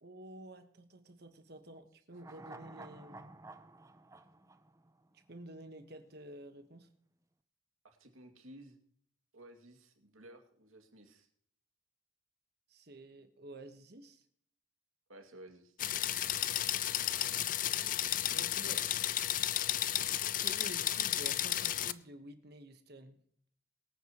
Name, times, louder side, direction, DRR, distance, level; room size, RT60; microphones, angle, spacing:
voice 1, 0.0-3.3 5.1-6.9 12.7-14.2 17.1-18.9 20.4-23.2, right 1 dB, 50° right, 8 dB, 1.3 m, -51 dB
sound 1, 2.1-5.5 5.8-5.9, right 2 dB, 15° right, 0.6 m, -52 dB
voice 2, 7.8-8.8 9.3-11.3 15.1-15.8 17.0-17.5, right 1 dB, 90° right, 4 dB, 2.4 m, -55 dB
sound 2, 15.8-21.9, left 12 dB, 40° left, 0.4 m, -33 dB
23.5 x 9.1 x 3.0 m, 0.62 s
head